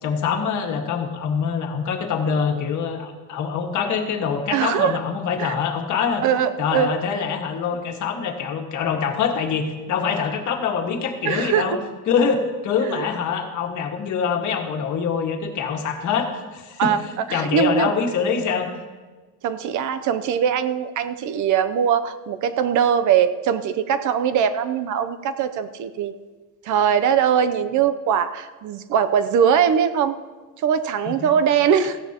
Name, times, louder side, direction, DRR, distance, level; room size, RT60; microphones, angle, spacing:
voice 1, 0.0-6.2 6.6-11.8 12.1-18.7 31.0-31.3, left 6 dB, 50° left, 3 dB, 1.7 m, -24 dB
voice 2, 4.5-5.0 5.4-5.5 6.2-6.9 11.2-11.8 12.9-13.0 16.8-17.0 17.3-17.9 19.4-26.1 26.6-30.2 30.6-32.0, right 8 dB, 50° right, 12 dB, 0.7 m, -21 dB
17.0 x 15.0 x 2.9 m, 1.3 s
cardioid pair, 160°, 38 cm